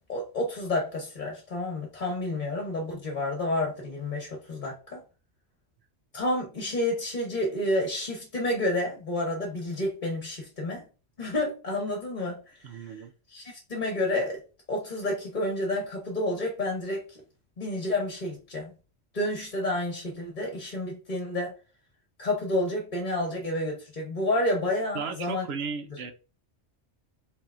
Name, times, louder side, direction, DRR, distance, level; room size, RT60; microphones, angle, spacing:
voice 1, 0.1-5.0 6.1-10.8 11.2-13.0 13.3-14.4 14.7-17.2 17.6-18.7 19.1-21.5 22.2-25.4 25.9-26.0, left 1 dB, 40° left, 1.2 m, -30 dB
voice 2, 12.6-13.1 24.9-26.1, right 6 dB, 65° right, 1.0 m, -35 dB
5.6 x 3.5 x 2.6 m
omnidirectional pair, 1.2 m